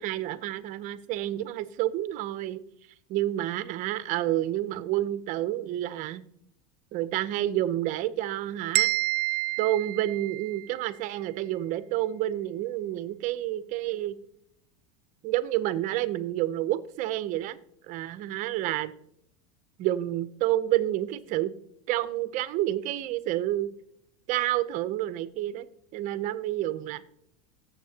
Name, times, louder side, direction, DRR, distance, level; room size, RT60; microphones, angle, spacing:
voice 1, 0.0-2.6 3.1-6.2 6.9-8.9 9.6-14.2 15.2-17.6 17.9-18.9 19.8-21.6 21.9-23.7 24.3-25.7 25.9-27.1, right 14 dB, 40° right, 15 dB, 0.6 m, -29 dB
sound 1, 8.7-10.8, right 21 dB, 75° right, 0.4 m, -28 dB
18.5 x 7.3 x 2.8 m, 0.76 s
supercardioid pair, 145°, 20 cm